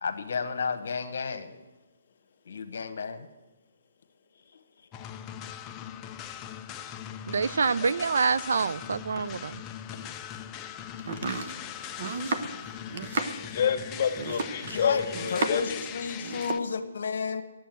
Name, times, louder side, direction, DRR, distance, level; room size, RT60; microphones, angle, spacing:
voice 1, 0.0-1.6 2.4-3.3 12.5-12.7 14.6-17.4, left 5 dB, 65° left, 8 dB, 1.2 m, -32 dB
sound 1, 4.9-16.6, left 10 dB, 20° left, 0.5 m, -40 dB
voice 2, 7.3-9.6, right 5 dB, 75° right, 17 dB, 0.4 m, -26 dB
Domestic sounds home sounds, 11.0-15.8 16.1-16.7, right 4 dB, 50° right, 1.0 m, -33 dB
voice 3, 13.5-15.8, left 7 dB, 40° left, 3 dB, 1.8 m, -28 dB
10.5 x 7.9 x 9.2 m, 1.1 s
hypercardioid pair, 160°, 0 cm